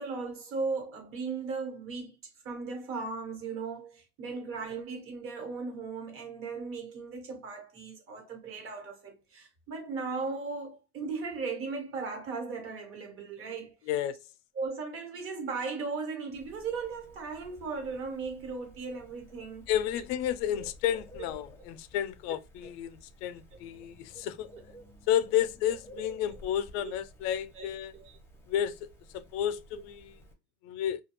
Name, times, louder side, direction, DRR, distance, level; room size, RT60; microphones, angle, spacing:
voice 1, 0.0-13.7 14.5-19.7 25.9-26.0 26.8-26.9 27.5-27.7 27.9-28.2, right 4 dB, 40° right, 1.1 m, -37 dB
Bird, 16.3-30.3, left 1 dB, 5° left, 0.6 m, -53 dB
voice 2, 19.7-24.5 25.1-27.9 28.5-30.1 30.6-31.0, left 10 dB, 80° left, 0.5 m, -31 dB
2.3 x 2.2 x 2.9 m
cardioid pair, 145°, 32 cm